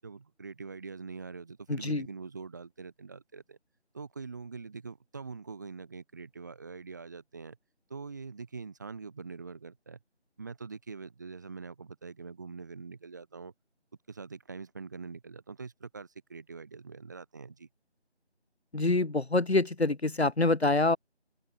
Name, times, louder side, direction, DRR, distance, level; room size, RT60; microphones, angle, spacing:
voice 1, 0.0-3.6 3.9-7.6 7.9-10.0 10.4-13.5 14.1-17.7, right 4 dB, 15° right, 7.4 m, -44 dB
voice 2, 18.7-21.0, left 2 dB, 65° left, 1.3 m, -26 dB
figure-of-eight pair, 170°, 34 cm